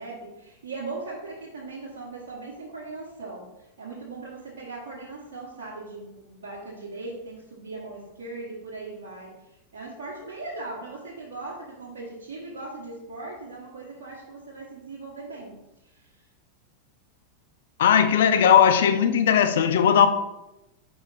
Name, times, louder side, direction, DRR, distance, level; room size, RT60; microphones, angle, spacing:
voice 1, 0.0-9.3 9.7-15.6 15.8-16.1, right 3 dB, 65° right, -5 dB, 1.4 m, -39 dB
voice 2, 17.8-20.1, left 8 dB, 60° left, 9 dB, 0.5 m, -18 dB
5.0 x 5.0 x 4.1 m, 0.92 s
figure-of-eight pair, 90°, 0 cm